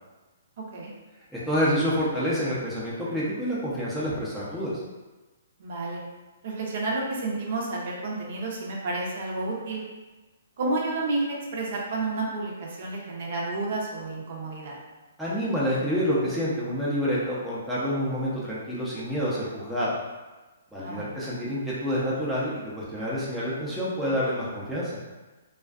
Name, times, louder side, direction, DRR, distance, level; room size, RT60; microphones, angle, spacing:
voice 1, 1.3-4.7 15.2-19.9 20.7-24.9, equal, ahead, -10 dB, 0.5 m, -28 dB
voice 2, 5.6-6.0 6.4-9.8 10.6-14.8 20.8-21.1, right 2 dB, 55° right, -2 dB, 0.6 m, -30 dB
2.4 x 2.3 x 2.3 m, 1.2 s
hypercardioid pair, 145°, 0 cm